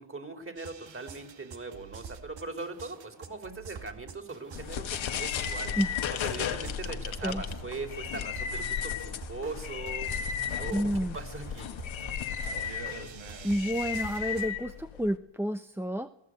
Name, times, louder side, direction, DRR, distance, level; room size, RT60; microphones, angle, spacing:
voice 1, 0.0-5.7 6.1-10.9 11.1-11.7, right 3 dB, 25° right, 6 dB, 4.6 m, -40 dB
sound 1, 0.6-14.5, right 6 dB, 75° right, 2.4 m, -46 dB
sound 2, 4.5-15.2, left 8 dB, 80° left, 1.6 m, -35 dB
voice 2, 10.7-11.2 13.4-16.1, equal, 5° right, 9 dB, 0.9 m, -30 dB
23.0 x 17.0 x 8.3 m, 0.83 s
cardioid pair, 55°, 46 cm